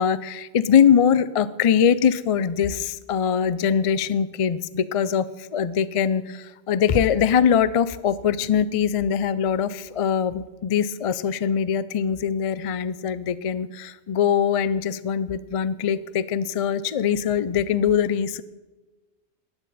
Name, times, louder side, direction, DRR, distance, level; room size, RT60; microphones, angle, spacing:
voice 1, 0.0-18.4, left 8 dB, 50° left, 16 dB, 0.4 m, -22 dB
16.0 x 11.0 x 4.2 m, 1.2 s
omnidirectional pair, 1.1 m